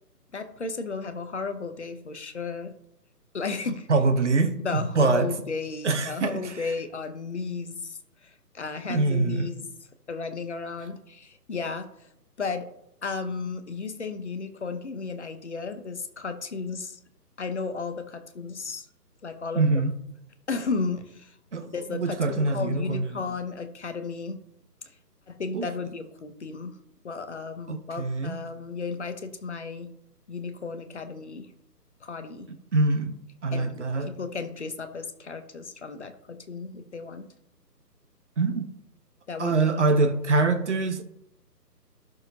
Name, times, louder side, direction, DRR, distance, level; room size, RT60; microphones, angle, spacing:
voice 1, 0.3-2.7 3.3-3.9 4.6-9.7 10.1-12.1 12.4-12.7 13.0-17.0 17.4-18.9 19.2-19.7 20.5-21.4 21.6-24.4 25.3-26.8 27.0-29.9 30.3-31.5 32.0-32.5 33.5-37.3 39.3-39.8, left 4 dB, 45° left, 1.0 m, -34 dB
voice 2, 3.9-5.3 5.8-6.5 8.9-9.5 19.5-19.9 21.5-23.0 25.5-25.7 27.7-28.4 32.7-34.1 38.4-38.7 39.4-41.0, right 3 dB, 45° right, 1.0 m, -24 dB
12.5 x 6.6 x 2.8 m
figure-of-eight pair, 145°, 49 cm